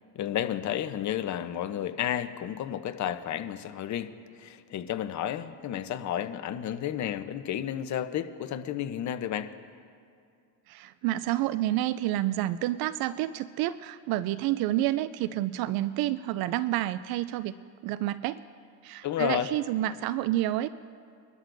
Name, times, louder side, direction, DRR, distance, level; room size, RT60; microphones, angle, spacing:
voice 1, 0.1-9.5 19.0-19.5, left 10 dB, 50° left, 9 dB, 0.8 m, -32 dB
voice 2, 10.7-17.5 17.8-18.4 18.8-20.7, right 14 dB, 70° right, 15 dB, 0.5 m, -29 dB
23.5 x 12.5 x 2.6 m, 2.3 s
cardioid pair, 100°, 38 cm